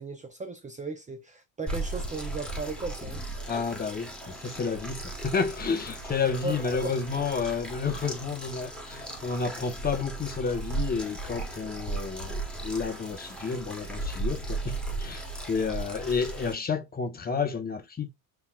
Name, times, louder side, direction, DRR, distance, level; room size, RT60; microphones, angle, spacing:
voice 1, 0.0-3.2 6.4-6.9, right 3 dB, 20° right, 0.5 m, -36 dB
sound 1, 1.7-16.5, right 2 dB, 5° left, 1.1 m, -36 dB
voice 2, 3.5-18.1, left 5 dB, 25° left, 0.8 m, -31 dB
5.6 x 2.9 x 2.3 m
cardioid pair, 130°, 37 cm